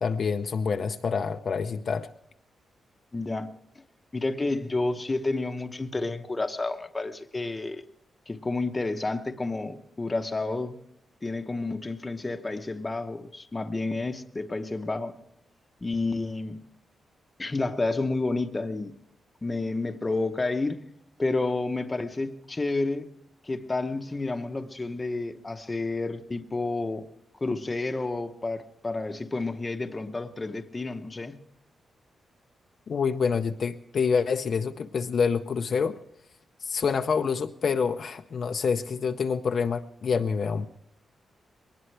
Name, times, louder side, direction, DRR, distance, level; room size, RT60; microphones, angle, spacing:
voice 1, 0.0-2.1 32.9-36.0 36.6-40.7, left 5 dB, 45° left, 0.6 m, -27 dB
voice 2, 3.1-3.5 4.1-7.8 8.3-10.8 11.2-15.1 15.8-16.6 17.4-18.9 19.4-20.8 21.2-23.1 23.4-27.1 27.4-31.4, left 3 dB, 15° left, 0.8 m, -30 dB
22.0 x 19.0 x 3.3 m
wide cardioid pair, 180°, 0 cm